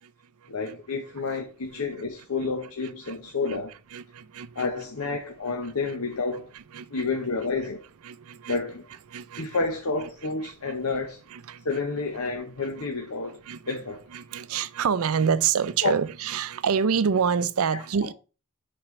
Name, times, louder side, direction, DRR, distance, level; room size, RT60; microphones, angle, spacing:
voice 1, 0.5-3.7 4.5-6.5 6.9-7.8 8.5-8.8 9.4-11.2 11.6-13.4 13.7-14.0 15.8-15.9 17.7-18.1, left 4 dB, 80° left, 0.9 m, -30 dB
voice 2, 3.9-4.7 6.7-7.1 8.0-8.6 9.1-9.5 10.7-10.8 11.3-11.7 13.5-13.8 14.1-18.1, right 7 dB, 75° right, 0.5 m, -27 dB
10.5 x 4.3 x 3.2 m
head